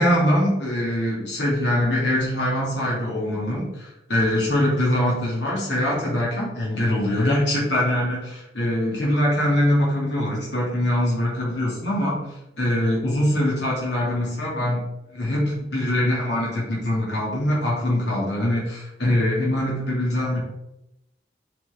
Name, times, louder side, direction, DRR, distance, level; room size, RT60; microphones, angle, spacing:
voice 1, 0.0-14.9 15.1-20.4, left 1 dB, 85° left, -5 dB, 2.5 m, -23 dB
7.5 x 4.8 x 3.6 m, 0.86 s
head